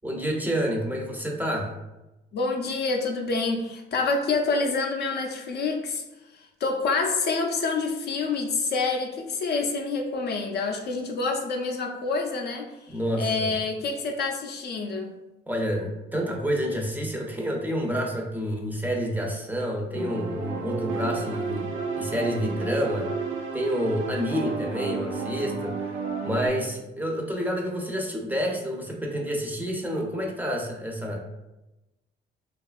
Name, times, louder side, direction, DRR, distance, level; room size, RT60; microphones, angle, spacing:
voice 1, 0.0-1.7 12.9-13.6 15.5-21.7 22.0-23.1 23.5-31.2, equal, 10° right, 0 dB, 0.5 m, -29 dB
voice 2, 2.3-6.0 6.3-15.1, left 3 dB, 55° left, 3 dB, 0.4 m, -27 dB
sound 1, 19.9-26.5, right 4 dB, 85° right, 0.5 m, -32 dB
2.7 x 2.3 x 2.3 m, 0.98 s
cardioid pair, 90°, 20 cm